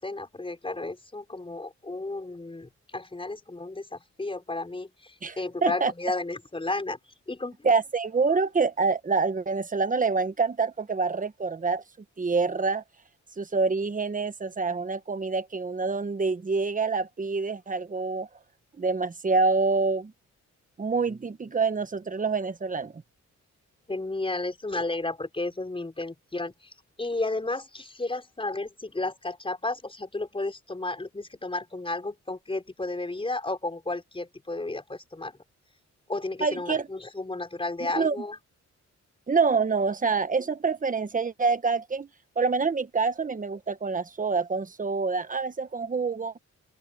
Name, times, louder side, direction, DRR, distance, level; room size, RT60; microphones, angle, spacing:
voice 1, 0.0-7.0 7.3-7.7 23.9-35.4 36.1-38.4, left 2 dB, 20° left, 5.2 m, -33 dB
voice 2, 5.6-5.9 7.6-11.8 12.2-12.8 13.4-18.3 18.8-20.1 20.8-23.0 36.4-36.9 37.9-38.2 39.3-42.1 42.4-46.3, right 4 dB, 30° right, 1.2 m, -26 dB
open air
wide cardioid pair, 120°, 29 cm